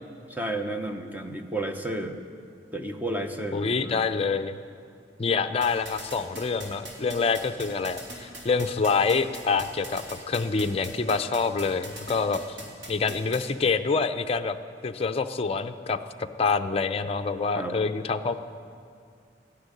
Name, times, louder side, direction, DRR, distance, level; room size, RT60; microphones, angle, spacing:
voice 1, 0.3-2.2 2.7-4.1 17.6-17.8, right 1 dB, 10° right, 5 dB, 0.9 m, -32 dB
voice 2, 3.5-4.6 5.2-12.4 12.9-14.6 14.8-18.4, left 4 dB, 35° left, 8 dB, 0.6 m, -26 dB
sound 1, 5.6-13.4, right 1 dB, 70° right, 3.2 m, -39 dB
13.0 x 10.0 x 9.7 m, 2.3 s
head